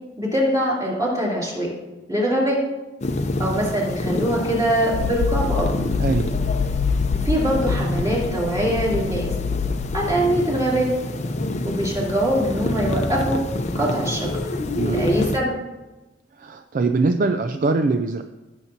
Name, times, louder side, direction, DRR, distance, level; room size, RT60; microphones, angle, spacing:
voice 1, 0.2-1.7 2.1-2.6 3.4-5.7 7.1-9.3 9.9-10.9 11.6-13.4 13.7-14.3 14.9-15.5, right 1 dB, 20° right, -5 dB, 2.8 m, -23 dB
sound 1, 3.0-15.4, left 1 dB, 35° left, 0.6 m, -27 dB
sound 2, 4.9-10.3, left 6 dB, 80° left, 0.3 m, -26 dB
voice 2, 6.0-6.3 14.7-15.1 16.4-18.2, right 3 dB, 45° right, 7 dB, 0.4 m, -22 dB
16.0 x 7.3 x 2.8 m, 1.1 s
head